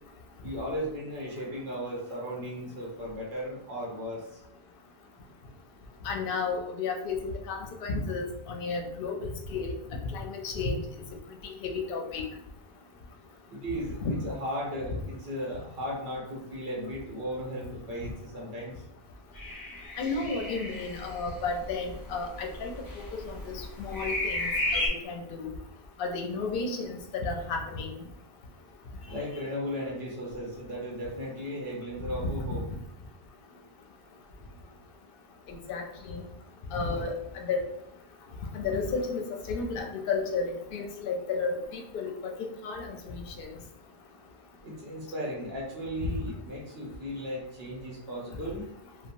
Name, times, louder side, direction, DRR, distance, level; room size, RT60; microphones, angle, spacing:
voice 1, 0.4-4.2 13.5-18.8 29.1-32.6 44.6-48.6, equal, 70° right, -3 dB, 1.0 m, -36 dB
voice 2, 6.0-7.2 7.5-9.7 10.1-10.8 11.4-12.2 14.0-14.2 20.0-25.5 26.0-27.9 32.4-32.6 35.5-36.2 36.7-37.6 38.5-42.3 42.6-43.5 46.0-46.1, left 4 dB, 65° left, 3 dB, 0.7 m, -33 dB
sound 1, 19.4-24.9, left 2 dB, 25° left, 0.5 m, -33 dB
2.9 x 2.2 x 2.5 m, 0.77 s
omnidirectional pair, 1.1 m